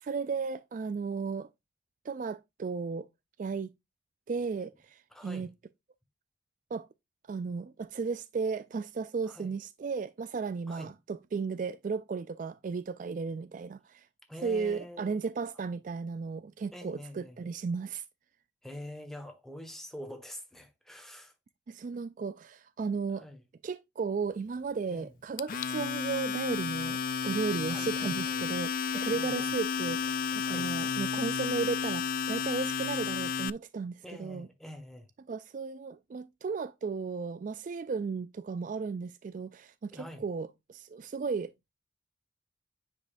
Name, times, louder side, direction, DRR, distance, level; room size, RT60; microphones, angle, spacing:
voice 1, 0.0-1.5 2.0-3.1 3.4-3.7 4.3-5.5 6.7-6.9 7.3-14.1 14.4-18.0 21.7-23.2 23.6-28.7 29.0-34.5 35.3-41.7, right 5 dB, 45° right, 0.3 m, -35 dB
voice 2, 5.1-5.5 9.3-9.5 10.7-10.9 14.3-15.2 16.7-17.4 18.6-21.3 23.1-23.4 24.9-25.1 27.7-28.5 28.9-29.5 30.4-30.7 34.0-35.1 39.9-40.2, left 1 dB, ahead, 1.4 m, -46 dB
Domestic sounds home sounds, 25.4-33.5, left 6 dB, 50° left, 0.4 m, -32 dB
9.4 x 5.2 x 2.6 m
head